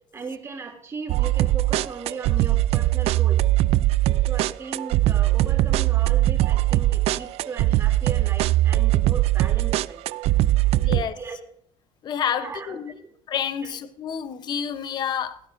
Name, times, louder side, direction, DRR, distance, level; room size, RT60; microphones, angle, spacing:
voice 1, 0.1-3.4 4.3-10.0 10.9-11.4 12.3-13.1 13.6-13.8, right 5 dB, 25° right, 2.9 m, -37 dB
sound 1, 1.1-11.0, right 15 dB, 65° right, 0.5 m, -21 dB
voice 2, 10.8-11.1 12.0-12.9 13.3-15.4, left 8 dB, 40° left, 0.8 m, -29 dB
16.5 x 16.0 x 2.6 m
cardioid pair, 140°, 11 cm